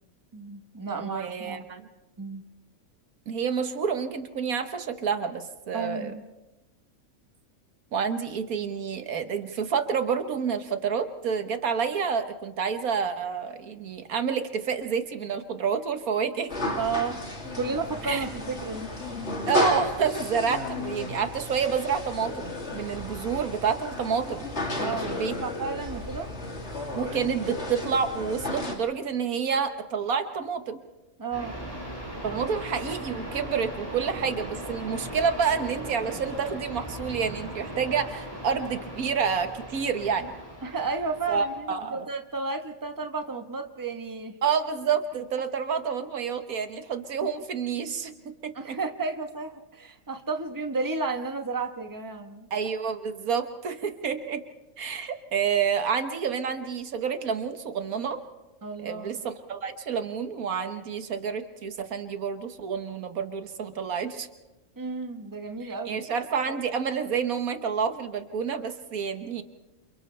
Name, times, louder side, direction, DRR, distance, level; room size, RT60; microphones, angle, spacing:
voice 1, 0.3-1.7 2.2-2.4 5.7-6.2 16.8-17.2 17.5-19.2 24.8-26.3 31.2-31.6 32.3-32.4 40.6-44.3 48.5-52.5 58.6-59.2 64.8-66.0, right 4 dB, 15° right, 5 dB, 1.1 m, -32 dB
voice 2, 0.9-1.9 3.3-6.1 7.9-16.5 18.0-18.3 19.5-24.5 24.8-25.3 27.0-30.8 32.2-40.4 41.3-42.1 44.4-48.1 48.4-48.8 52.5-54.4 54.8-58.2 58.8-64.3 65.6-69.4, right 6 dB, 85° right, 8 dB, 1.7 m, -29 dB
sound 1, 16.5-28.8, left 2 dB, 50° left, 3.1 m, -33 dB
sound 2, 31.3-41.6, right 1 dB, 15° left, 8.2 m, -38 dB
29.0 x 28.0 x 3.3 m, 1.0 s
omnidirectional pair, 1.5 m